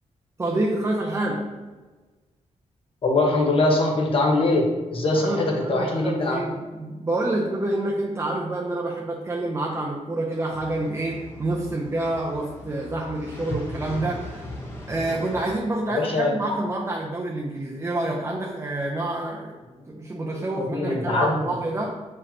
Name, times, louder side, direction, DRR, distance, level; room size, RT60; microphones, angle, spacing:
voice 1, 0.4-1.6 5.2-14.4 14.9-19.6 19.9-22.1, right 2 dB, 20° right, -2 dB, 0.6 m, -28 dB
voice 2, 3.0-6.4 15.9-16.4 20.3-21.5, left 2 dB, 45° left, 0 dB, 1.2 m, -23 dB
sound 1, 10.5-15.6, left 1 dB, 20° left, 1.0 m, -38 dB
7.1 x 5.0 x 2.8 m, 1.3 s
wide cardioid pair, 140°, 13 cm